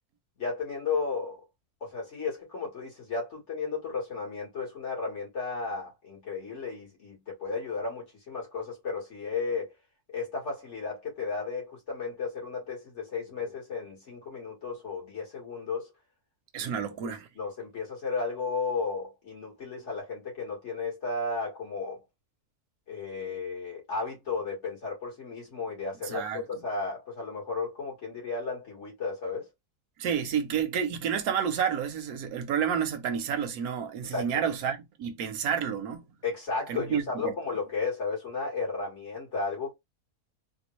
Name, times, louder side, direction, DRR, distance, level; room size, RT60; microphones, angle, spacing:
voice 1, 0.4-1.4 1.8-9.7 10.1-15.9 16.6-16.7 17.4-22.0 22.9-29.5 34.1-34.3 36.2-39.7, left 4 dB, 50° left, 1.9 m, -34 dB
voice 2, 16.5-17.3 26.0-26.4 30.0-36.0 36.7-37.3, right 8 dB, 80° right, 1.2 m, -30 dB
3.7 x 2.3 x 3.0 m
omnidirectional pair, 1.6 m